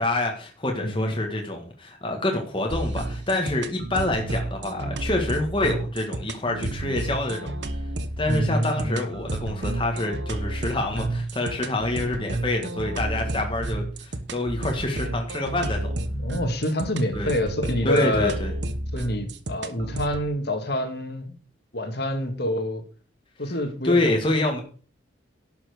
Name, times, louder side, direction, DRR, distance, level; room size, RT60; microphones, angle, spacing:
voice 1, 0.0-7.5 8.2-15.9 17.1-17.3 17.8-18.5 23.8-24.6, left 2 dB, 25° left, 2 dB, 1.7 m, -26 dB
voice 2, 0.8-1.2 8.3-9.0 16.1-18.4 18.9-21.4 21.7-22.8 23.4-24.1, left 1 dB, 55° left, 5 dB, 2.1 m, -27 dB
sound 1, 2.7-20.3, right 2 dB, 60° right, 1.0 m, -31 dB
11.5 x 5.9 x 6.6 m, 0.41 s
head